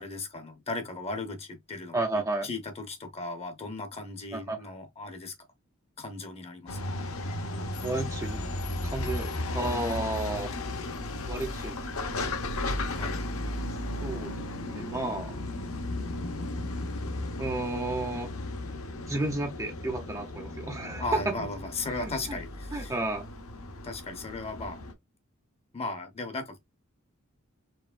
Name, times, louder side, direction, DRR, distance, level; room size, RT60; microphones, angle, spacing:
voice 1, 0.0-5.3 6.0-6.8 12.9-13.2 21.0-22.9 23.8-24.8 25.7-26.6, left 3 dB, 30° left, 0.8 m, -37 dB
voice 2, 1.9-2.5 4.3-4.6 7.8-8.5 8.8-10.6 11.3-11.8 12.2-12.5 14.0-14.3 14.7-15.4 17.4-18.3 19.1-21.3 21.9-22.4 22.7-23.3, right 2 dB, 15° right, 0.5 m, -32 dB
sound 1, 6.7-24.9, left 2 dB, 75° left, 0.9 m, -35 dB
4.7 x 3.1 x 2.4 m
head